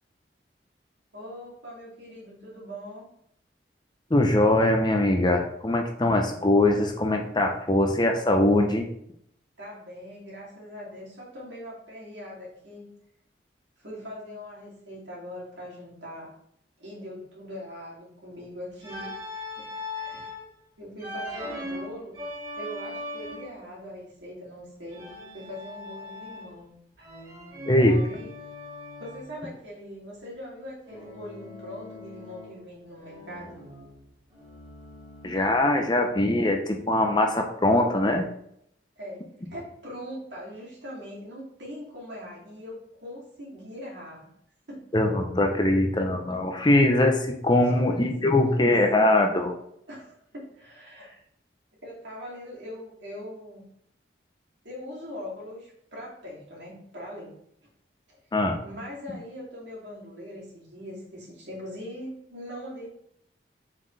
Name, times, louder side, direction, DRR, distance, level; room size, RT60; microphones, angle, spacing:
voice 1, 1.1-3.1 9.6-12.9 13.8-16.3 16.8-20.3 20.8-22.2 22.5-25.1 25.3-26.7 27.0-27.3 27.7-28.3 29.0-33.6 39.0-39.2 39.5-44.3 44.7-44.8 47.7-48.7 49.0-49.1 49.9-51.2 51.8-53.6 54.6-57.4 58.6-62.9, equal, 75° right, -4 dB, 2.6 m, -41 dB
voice 2, 4.1-8.9 27.7-28.0 35.2-38.3 44.9-49.6 58.3-58.6, left 1 dB, 25° left, 3 dB, 0.7 m, -22 dB
Organ, 18.8-20.4 21.0-23.6 24.9-26.6 27.0-29.3 30.9-32.7 33.0-35.7, left 1 dB, 25° right, 2.2 m, -40 dB
7.3 x 4.4 x 3.3 m, 0.72 s
head